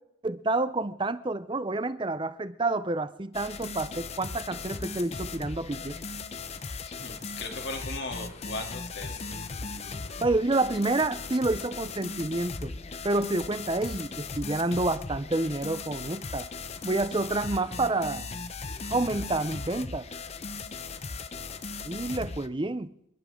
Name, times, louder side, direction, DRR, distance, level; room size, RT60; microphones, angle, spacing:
voice 1, 0.2-6.0 10.2-12.7 13.0-16.5 16.8-18.3 18.9-20.1 21.8-22.9, right 2 dB, 25° right, 0.6 m, -28 dB
sound 1, 3.3-22.5, left 4 dB, 30° left, 0.7 m, -38 dB
voice 2, 6.8-9.2, left 2 dB, 55° left, 2.9 m, -38 dB
28.0 x 12.0 x 3.8 m
head